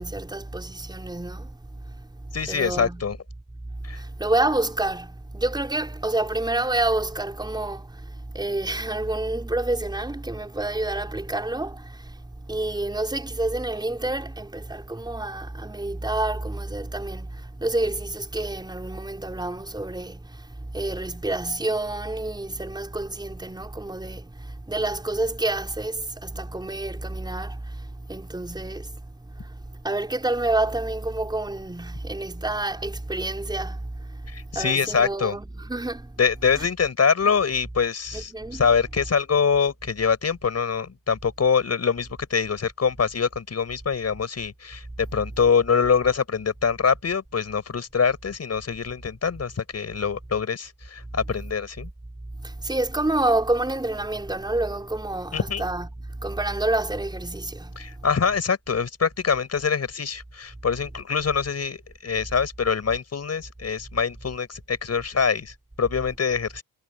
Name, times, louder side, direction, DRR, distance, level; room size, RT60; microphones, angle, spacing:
voice 1, 0.0-3.0 3.7-36.2 36.5-36.7 38.1-38.6 52.4-58.0, right 2 dB, 10° right, 5.5 m, -29 dB
voice 2, 2.3-3.2 3.8-4.0 34.3-35.3 36.2-51.9 55.3-55.6 57.8-66.6, left 6 dB, 30° left, 6.4 m, -24 dB
cardioid pair, 170°, 49 cm